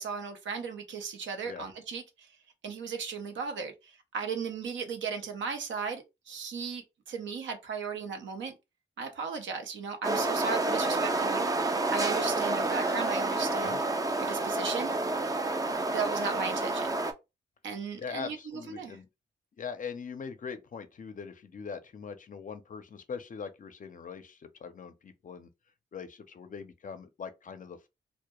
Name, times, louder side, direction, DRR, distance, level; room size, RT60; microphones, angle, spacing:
voice 1, 0.0-2.0 2.6-8.5 9.0-11.5 11.9-13.8 14.2-14.9 15.9-16.9 17.6-18.4 18.7-19.0, right 5 dB, 80° right, 0.6 m, -36 dB
sound 1, 10.0-17.1, right 2 dB, 20° right, 0.4 m, -29 dB
voice 2, 18.0-19.1 19.6-25.5 25.9-27.9, left 6 dB, 45° left, 0.5 m, -41 dB
2.1 x 2.1 x 2.9 m
cardioid pair, 70°, 19 cm